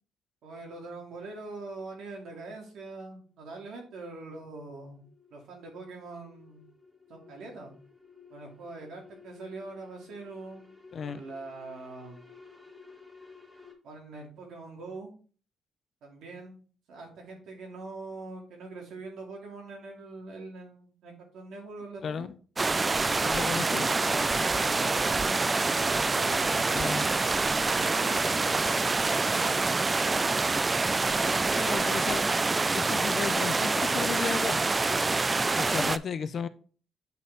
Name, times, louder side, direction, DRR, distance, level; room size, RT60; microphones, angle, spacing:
voice 1, 0.4-5.0 5.3-6.6 7.1-7.7 8.3-10.6 11.0-12.3 13.8-15.1 16.0-16.6 16.9-22.3 23.0-26.7 27.6-30.3 31.1-31.9, right 3 dB, 80° right, 2.2 m, -43 dB
sound 1, 3.3-13.7, left 5 dB, 5° right, 1.4 m, -55 dB
voice 2, 22.0-22.4 23.2-23.9 26.7-27.1 31.6-32.4 32.7-34.7 35.6-36.5, left 7 dB, 55° left, 0.5 m, -34 dB
sound 2, 22.6-36.0, right 3 dB, 25° right, 0.3 m, -26 dB
8.1 x 4.1 x 3.4 m
cardioid pair, 90°, 0 cm